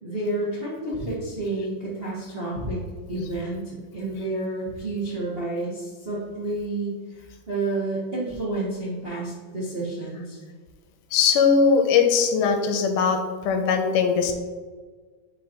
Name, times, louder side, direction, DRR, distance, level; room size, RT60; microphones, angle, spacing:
voice 1, 0.0-2.8 3.1-10.4, right 2 dB, 85° right, -8 dB, 0.5 m, -30 dB
voice 2, 11.1-14.3, left 5 dB, 80° left, 5 dB, 2.1 m, -20 dB
9.6 x 4.1 x 3.0 m, 1.5 s
omnidirectional pair, 3.9 m